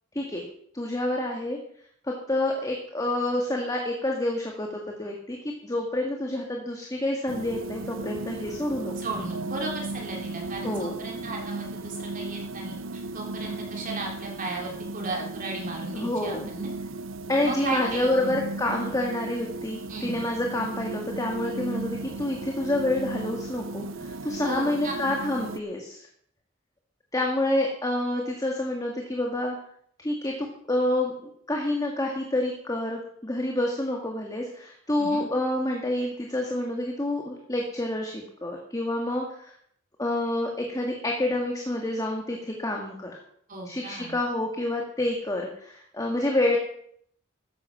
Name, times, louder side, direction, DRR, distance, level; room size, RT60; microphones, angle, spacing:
voice 1, 0.7-1.6 2.0-8.9 10.6-11.0 15.9-16.5 17.3-26.1 27.1-29.6 30.0-31.1 31.5-39.5 40.0-43.1 43.7-46.6, left 1 dB, 20° left, 1 dB, 1.9 m, -28 dB
sound 1, 7.3-25.6, right 2 dB, 75° right, 0.8 m, -36 dB
voice 2, 9.0-16.7 17.4-18.5 19.9-20.2 24.4-24.9 35.0-35.3 43.5-44.2, right 2 dB, 40° right, -1 dB, 3.7 m, -35 dB
14.0 x 10.0 x 6.1 m, 0.66 s
head